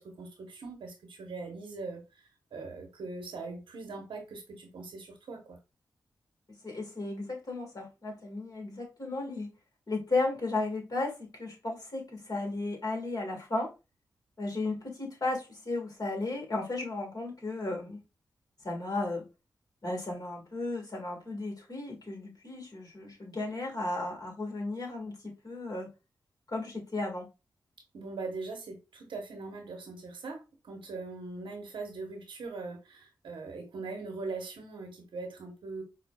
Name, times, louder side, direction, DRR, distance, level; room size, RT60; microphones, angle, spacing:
voice 1, 0.0-2.0 2.5-5.6 27.9-35.8, right 3 dB, 80° right, 0.9 m, -41 dB
voice 2, 6.6-9.5 9.9-13.7 14.4-18.0 18.6-19.2 19.8-25.9 26.5-27.3, left 2 dB, 50° left, 1.5 m, -34 dB
4.7 x 2.2 x 2.2 m
cardioid pair, 45°, 8 cm